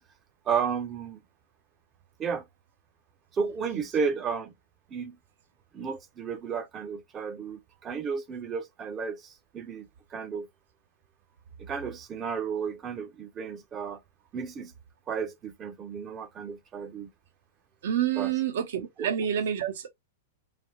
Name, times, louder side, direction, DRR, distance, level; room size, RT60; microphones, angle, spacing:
voice 1, 0.5-1.2 2.2-2.5 3.3-4.5 4.9-5.2 5.7-10.5 11.6-14.0 14.3-14.7 15.1-17.1 18.2-18.3 19.0-19.1, right 6 dB, 25° right, 0.6 m, -33 dB
voice 2, 17.8-19.9, right 9 dB, 70° right, 0.7 m, -28 dB
3.4 x 2.3 x 3.7 m
hypercardioid pair, 130°, 0 cm